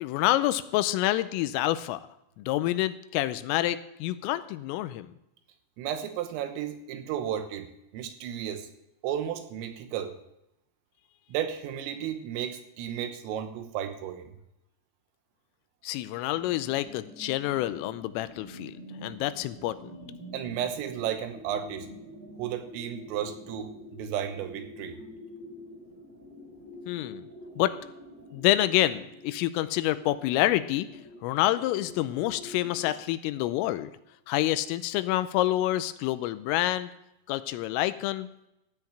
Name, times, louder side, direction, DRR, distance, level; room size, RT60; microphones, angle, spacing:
voice 1, 0.0-2.0 2.4-5.1 15.8-19.9 26.9-27.3 27.6-27.8 28.3-30.9 31.2-33.9 34.3-36.9 37.3-38.3, left 15 dB, 90° left, 13 dB, 3.3 m, -27 dB
voice 2, 5.8-8.7 9.0-10.1 11.3-14.3 20.3-21.9 22.4-25.0, right 9 dB, 85° right, 8 dB, 3.8 m, -33 dB
sound 1, 16.3-32.9, left 1 dB, 10° left, 2.4 m, -47 dB
16.0 x 5.9 x 8.8 m, 0.83 s
omnidirectional pair, 5.8 m